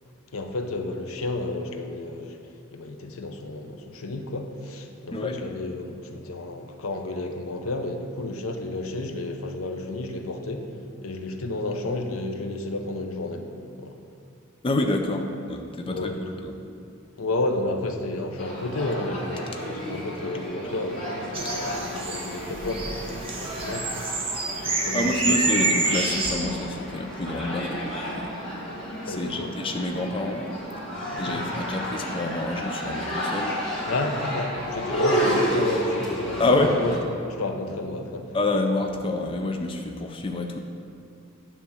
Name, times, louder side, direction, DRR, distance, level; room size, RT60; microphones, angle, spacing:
voice 1, 0.3-2.4 2.7-10.7 11.0-13.5 13.8-14.0 15.9-16.5 17.2-23.9 24.6-25.4 29.0-29.6 31.1-31.5 33.9-38.4, left 2 dB, 90° left, 5 dB, 0.7 m, -31 dB
voice 2, 14.6-16.5 23.7-23.8 24.9-28.3 29.0-30.4 31.2-33.5 36.4-36.7 38.3-40.6, left 2 dB, 25° left, 4 dB, 0.4 m, -27 dB
sound 1, 18.4-37.0, equal, 65° left, 1.8 m, -31 dB
sound 2, 21.3-26.3, right 3 dB, 25° right, 1.0 m, -27 dB
9.4 x 3.5 x 7.0 m, 2.4 s
head